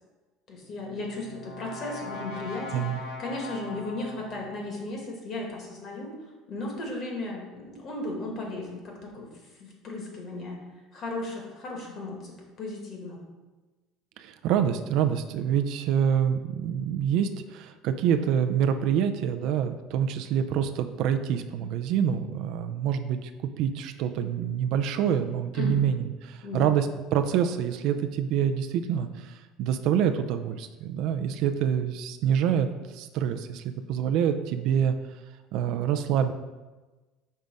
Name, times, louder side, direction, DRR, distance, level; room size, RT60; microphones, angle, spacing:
voice 1, 0.5-6.1 6.5-9.3 9.6-10.6 10.9-13.2 25.5-25.9 26.4-26.7, left 2 dB, 35° left, 0 dB, 1.3 m, -35 dB
Brass instrument, 0.6-4.8, left 1 dB, 90° left, 1.0 m, -41 dB
voice 2, 14.2-34.9 35.5-36.3, right 8 dB, 55° right, 8 dB, 0.3 m, -26 dB
5.3 x 3.5 x 5.1 m, 1.2 s
cardioid pair, 160°, 0 cm